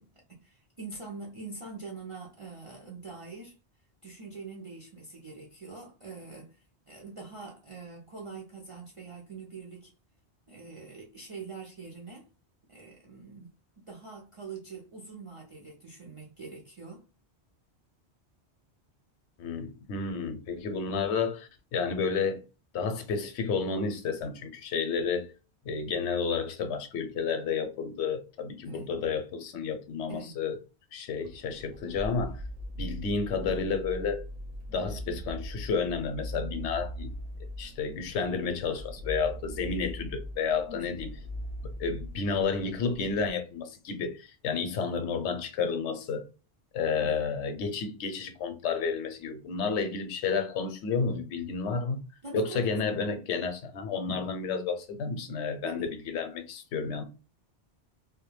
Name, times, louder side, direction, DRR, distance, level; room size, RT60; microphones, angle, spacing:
voice 1, 0.0-3.6 4.0-9.9 10.5-12.3 12.7-17.0 28.6-28.9 30.1-30.3 40.7-40.9 47.0-47.2 52.2-52.8 55.6-55.9, right 4 dB, 45° right, 0.4 m, -44 dB
voice 2, 19.4-22.4 22.7-25.3 25.7-30.6 30.9-32.4 32.8-34.2 34.7-37.1 37.6-41.1 41.6-46.3 46.7-52.0 52.3-57.0, left 5 dB, 80° left, 0.9 m, -31 dB
sound 1, 31.2-43.3, equal, 70° right, 0.8 m, -40 dB
2.2 x 2.1 x 3.0 m
omnidirectional pair, 1.1 m